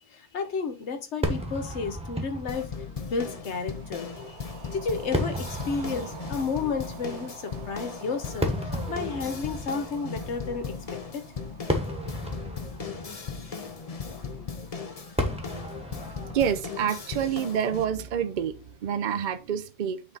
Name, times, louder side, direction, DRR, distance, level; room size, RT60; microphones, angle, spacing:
voice 1, 0.1-2.7 3.1-10.7 11.1-11.3, left 4 dB, 80° left, 1.3 m, -32 dB
Fireworks, 1.2-18.6, equal, 5° right, 1.0 m, -36 dB
sound 1, 2.5-17.8, left 5 dB, 40° left, 0.7 m, -38 dB
sound 2, 3.5-13.0, right 7 dB, 80° right, 1.0 m, -48 dB
voice 2, 16.3-20.0, right 8 dB, 55° right, 0.6 m, -28 dB
8.4 x 3.6 x 3.9 m
omnidirectional pair, 1.2 m